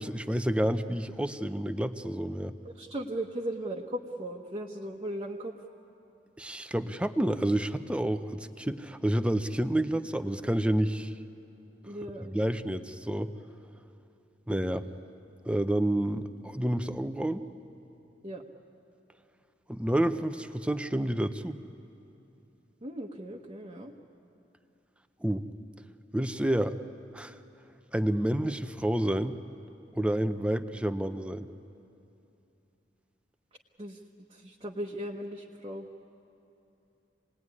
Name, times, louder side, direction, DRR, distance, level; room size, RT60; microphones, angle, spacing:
voice 1, 0.0-2.5 6.4-11.1 12.3-13.3 14.5-14.8 15.4-17.4 19.7-21.6 25.2-25.5 26.1-26.8 27.1-27.4 27.9-29.3 29.9-31.5, right 1 dB, 5° right, 10 dB, 0.7 m, -29 dB
voice 2, 2.7-5.6 11.9-12.3 18.2-18.4 22.8-23.9 33.8-34.0 34.3-35.9, right 1 dB, 30° right, -1 dB, 1.2 m, -37 dB
27.5 x 19.5 x 9.7 m, 2.8 s
head